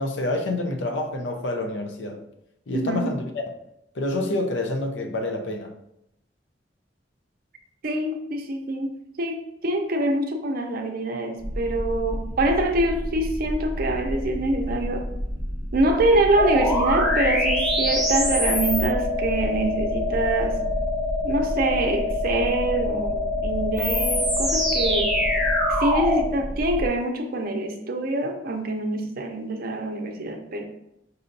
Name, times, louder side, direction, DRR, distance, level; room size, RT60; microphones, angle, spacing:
voice 1, 0.0-2.2 2.7-3.5 4.0-5.7, left 2 dB, 90° left, 0.5 m, -27 dB
voice 2, 2.7-3.2 7.8-15.1 15.7-20.6 21.2-25.2 25.7-30.6, right 2 dB, 55° right, 0.5 m, -25 dB
sound 1, 11.4-26.9, equal, 25° left, 0.8 m, -31 dB
sound 2, 16.4-26.3, left 1 dB, ahead, 0.5 m, -25 dB
5.3 x 2.7 x 2.6 m
head